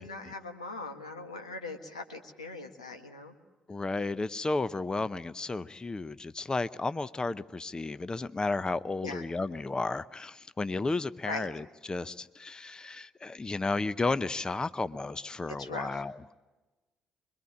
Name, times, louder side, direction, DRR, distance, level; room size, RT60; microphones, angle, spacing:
voice 1, 0.0-3.3 9.0-9.2 11.3-11.5 15.6-16.0, left 3 dB, 90° left, 6 dB, 1.6 m, -40 dB
voice 2, 3.7-16.4, left 3 dB, 25° left, 16 dB, 0.7 m, -33 dB
25.5 x 22.5 x 8.6 m, 1.2 s
hypercardioid pair, 45°, 3 cm